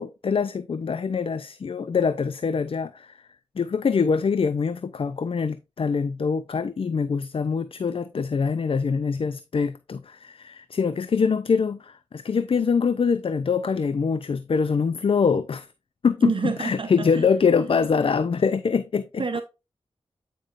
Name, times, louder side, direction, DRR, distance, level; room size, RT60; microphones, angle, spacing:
voice 1, 0.0-3.2 3.6-15.7 16.0-16.3 16.6-19.2, left 5 dB, 55° left, 0.5 m, -24 dB
voice 2, 16.2-17.3 19.2-19.4, right 5 dB, 50° right, 0.7 m, -28 dB
8.8 x 5.3 x 2.6 m
cardioid pair, 40°, 11 cm